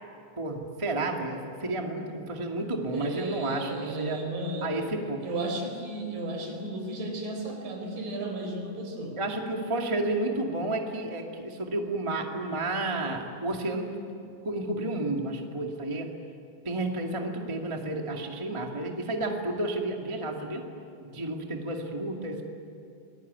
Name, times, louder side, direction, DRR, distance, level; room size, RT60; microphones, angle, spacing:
voice 1, 0.4-4.3 4.6-5.2 9.2-13.9 14.4-16.1 16.6-20.6 21.0-22.4, right 2 dB, 10° right, 1 dB, 1.5 m, -31 dB
voice 2, 2.9-4.8 5.2-9.2, right 2 dB, 65° right, 3 dB, 6.1 m, -34 dB
28.0 x 21.0 x 9.6 m, 2.5 s
omnidirectional pair, 4.2 m